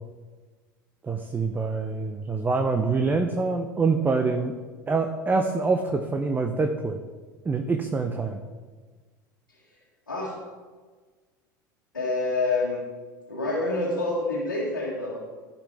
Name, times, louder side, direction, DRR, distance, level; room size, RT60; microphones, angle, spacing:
voice 1, 1.0-4.6 4.9-7.0 7.4-8.4, right 4 dB, 15° right, 5 dB, 0.7 m, -25 dB
voice 2, 11.9-12.8 13.3-15.2, left 2 dB, 85° left, -6 dB, 1.8 m, -27 dB
14.5 x 5.2 x 3.4 m, 1.4 s
figure-of-eight pair, 75°, 11 cm